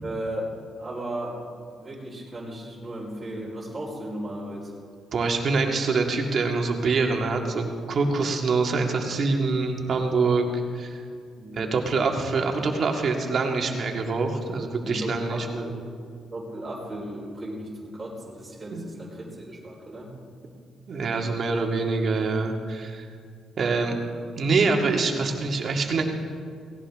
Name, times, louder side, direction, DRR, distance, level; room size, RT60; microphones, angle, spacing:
voice 1, 0.0-0.5 0.8-1.4 1.8-4.7 11.4-11.7 14.8-15.7 16.3-20.1, right 1 dB, 25° right, -5 dB, 4.5 m, -35 dB
voice 2, 5.1-10.5 10.7-11.0 11.6-15.7 18.7-18.8 20.9-23.0 23.6-24.0 24.4-26.0, right 4 dB, 55° right, 2 dB, 2.1 m, -25 dB
17.5 x 17.5 x 3.7 m, 2.1 s
cardioid pair, 90°, 0 cm